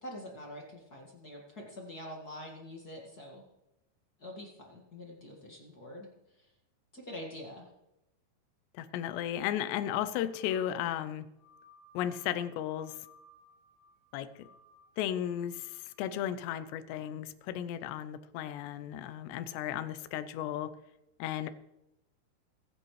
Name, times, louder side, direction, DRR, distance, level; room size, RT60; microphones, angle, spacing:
voice 1, 0.0-3.4 4.2-6.1 6.4-6.5 6.9-7.7, left 1 dB, 45° left, -1 dB, 1.3 m, -45 dB
voice 2, 8.7-11.3 11.9-13.0 14.1-14.3 15.0-20.7 21.2-21.5, left 11 dB, 80° left, 12 dB, 2.8 m, -35 dB
sound 1, 10.2-16.1, left 2 dB, 60° left, 7.3 m, -61 dB
24.0 x 10.5 x 3.2 m, 0.90 s
omnidirectional pair, 5.0 m